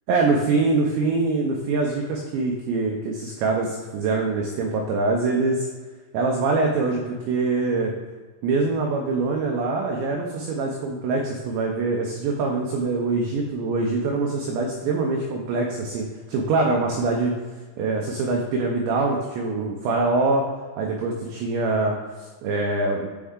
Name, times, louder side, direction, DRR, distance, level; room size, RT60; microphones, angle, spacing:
voice 1, 0.1-5.7 6.1-7.9 8.4-17.3 17.8-20.4 20.8-23.1, right 3 dB, 80° right, 1 dB, 2.6 m, -24 dB
7.4 x 4.4 x 3.6 m, 1.4 s
omnidirectional pair, 5.6 m